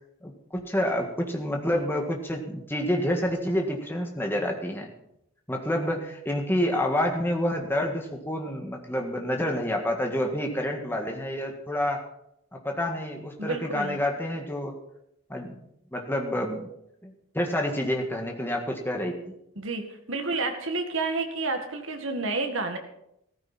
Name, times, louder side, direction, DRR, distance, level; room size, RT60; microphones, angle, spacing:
voice 1, 0.2-4.9 5.5-12.0 12.5-14.8 15.3-15.6 15.9-16.7 17.0-19.4, left 1 dB, 10° left, 1 dB, 1.8 m, -28 dB
voice 2, 13.4-14.0 19.6-22.8, right 3 dB, 60° right, 5 dB, 2.0 m, -30 dB
15.5 x 14.0 x 4.3 m, 0.78 s
head